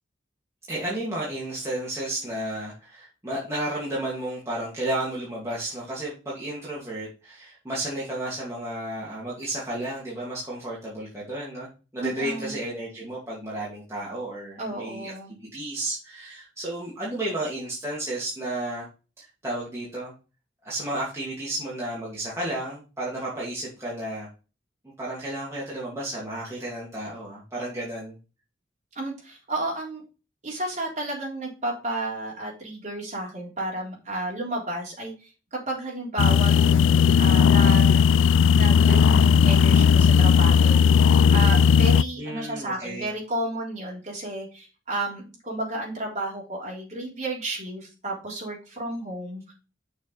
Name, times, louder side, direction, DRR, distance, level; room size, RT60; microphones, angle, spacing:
voice 1, 0.7-15.1 15.5-18.9 19.2-20.1 20.6-24.3 25.0-28.1 42.2-43.1, right 1 dB, 15° right, -7 dB, 2.5 m, -32 dB
voice 2, 12.0-12.6 14.6-15.4 29.0-30.0 30.4-38.0 38.5-49.5, right 1 dB, 35° right, -3 dB, 3.7 m, -32 dB
sound 1, 36.2-42.0, left 6 dB, 85° left, 0.3 m, -17 dB
6.8 x 5.3 x 5.2 m, 0.32 s
head